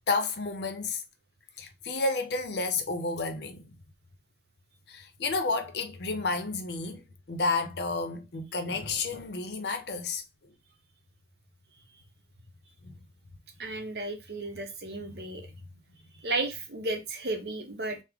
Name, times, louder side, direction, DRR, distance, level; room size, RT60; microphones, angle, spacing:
voice 1, 0.1-1.0 1.6-3.7 4.9-7.0 7.3-10.2 12.8-12.9, left 3 dB, 70° left, 0.6 m, -31 dB
voice 2, 13.6-15.5 16.2-18.0, right 2 dB, 65° right, 0.8 m, -33 dB
3.5 x 2.0 x 3.4 m
head